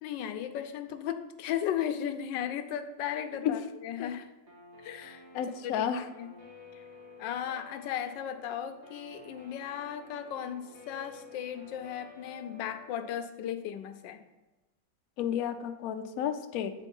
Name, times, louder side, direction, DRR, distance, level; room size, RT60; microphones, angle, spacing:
voice 1, 0.0-4.3 4.8-5.2 5.6-5.8 6.2-6.3 6.7-6.8 7.2-14.2, left 9 dB, 85° left, 9 dB, 1.3 m, -36 dB
Guitar, 4.5-13.2, left 3 dB, 40° right, 1.4 m, -52 dB
voice 2, 5.3-6.0 15.2-16.7, left 9 dB, 70° left, 7 dB, 0.9 m, -31 dB
8.2 x 3.8 x 5.3 m, 1.1 s
omnidirectional pair, 2.0 m